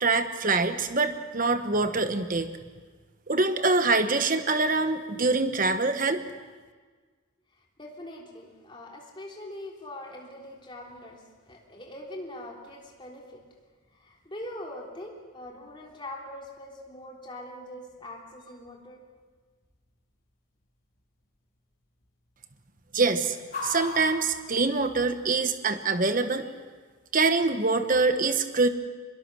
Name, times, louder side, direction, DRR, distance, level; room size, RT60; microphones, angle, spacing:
voice 1, 0.0-2.5 3.3-6.2 22.9-23.4 23.6-26.4 27.1-28.7, right 3 dB, 40° right, 8 dB, 1.2 m, -24 dB
voice 2, 7.8-13.4 13.9-19.0, left 1 dB, 20° left, -1 dB, 3.5 m, -42 dB
sound 1, 10.5-25.3, left 3 dB, 40° left, 4.4 m, -47 dB
24.5 x 22.0 x 6.3 m, 1.5 s
head